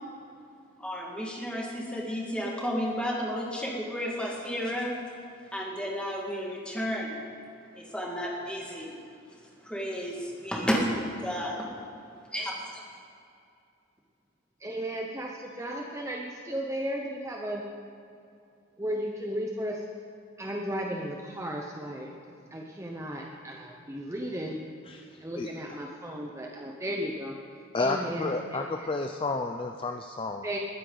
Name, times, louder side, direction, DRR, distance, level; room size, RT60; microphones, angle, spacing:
voice 1, 0.8-5.0 5.5-7.2 7.7-9.0 9.3-11.7 12.3-12.8, equal, 5° left, -3 dB, 1.9 m, -32 dB
voice 2, 14.6-17.6 18.8-19.8 20.4-22.1 22.5-24.6 25.2-27.4 27.8-28.8 30.4-30.6, equal, 15° right, 0 dB, 0.7 m, -35 dB
voice 3, 24.8-25.5 27.7-30.5, left 3 dB, 25° left, 4 dB, 0.4 m, -31 dB
20.5 x 9.5 x 3.9 m, 2.6 s
head